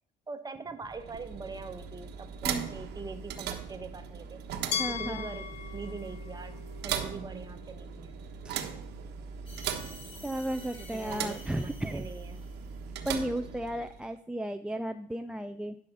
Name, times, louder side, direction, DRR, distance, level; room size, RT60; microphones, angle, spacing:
voice 1, 0.3-5.5 5.7-6.6 6.8-8.1 10.8-12.4, right 4 dB, 25° right, 8 dB, 1.1 m, -43 dB
sound 1, 0.8-14.1, right 7 dB, 80° right, 1.2 m, -39 dB
Glass, 4.7-7.6, left 8 dB, 80° left, 0.8 m, -38 dB
voice 2, 4.8-5.3 8.4-8.5 10.2-12.0 13.0-15.8, right 1 dB, 5° right, 10 dB, 0.4 m, -34 dB
sound 2, 9.5-12.8, left 1 dB, 30° left, 3.3 m, -50 dB
11.0 x 5.7 x 5.4 m, 0.65 s
cardioid pair, 110°, 17 cm